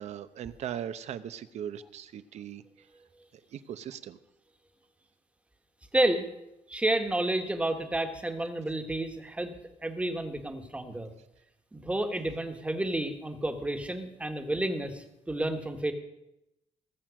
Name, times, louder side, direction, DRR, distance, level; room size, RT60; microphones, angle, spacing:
voice 1, 0.0-2.6 3.5-4.2, right 9 dB, 65° right, 13 dB, 0.8 m, -39 dB
voice 2, 5.9-6.3 6.7-9.5 9.8-11.1 11.7-15.9, right 1 dB, 10° right, 6 dB, 1.3 m, -30 dB
19.0 x 7.5 x 6.3 m, 0.88 s
cardioid pair, 140°, 12 cm